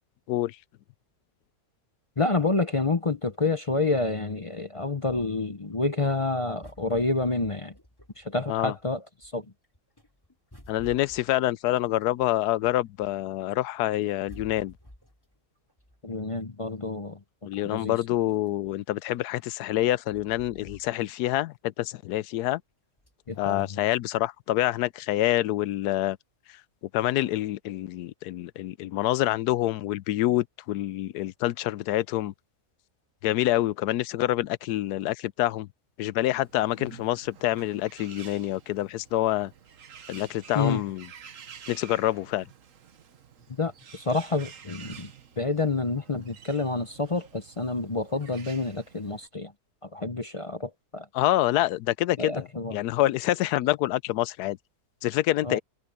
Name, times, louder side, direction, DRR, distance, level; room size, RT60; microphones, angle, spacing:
voice 1, 2.2-7.7 8.2-9.4 16.0-17.2 17.6-18.0 23.3-23.8 40.5-40.8 43.6-45.1 45.4-49.5 49.9-51.1 52.2-52.8 55.4-55.6, left 3 dB, 35° left, 0.5 m, -28 dB
sound 1, 5.1-8.8 9.2-13.3 13.7-16.6 17.2-17.3 17.6-21.4 21.7-21.8 23.0-23.4 24.0-24.1, left 1 dB, 15° left, 4.0 m, -52 dB
voice 2, 10.7-14.7 17.4-22.6 23.4-26.2 26.9-32.3 33.2-35.7 36.0-39.5 40.1-41.0 41.7-42.5 51.1-52.5 52.7-54.6 55.0-55.6, left 15 dB, 90° left, 1.1 m, -26 dB
Bird, 36.3-49.3, right 7 dB, 60° right, 1.5 m, -50 dB
omnidirectional pair, 1.6 m